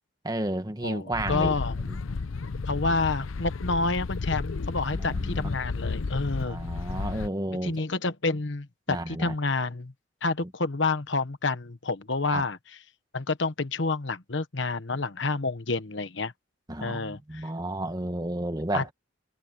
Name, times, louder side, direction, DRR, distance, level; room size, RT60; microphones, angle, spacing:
voice 1, 0.2-2.0 4.9-5.6 6.4-7.8 8.9-9.3 12.3-12.4 16.7-18.9, right 1 dB, 20° right, 1.5 m, -32 dB
voice 2, 0.8-1.8 2.7-6.6 7.6-9.9 10.2-12.6 13.1-16.3 16.8-17.4 18.7-18.9, left 3 dB, 65° left, 1.2 m, -29 dB
sound 1, 1.1-7.3, left 4 dB, 85° left, 0.6 m, -32 dB
head